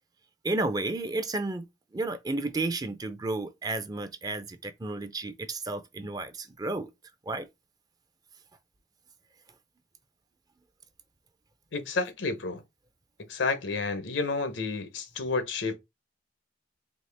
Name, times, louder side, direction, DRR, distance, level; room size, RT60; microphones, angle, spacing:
voice 1, 0.4-1.7 1.9-6.9 7.3-7.5, right 2 dB, 20° right, 0.4 m, -32 dB
voice 2, 11.7-12.6 13.3-15.8, left 3 dB, 85° left, 0.8 m, -30 dB
4.1 x 2.9 x 3.3 m
head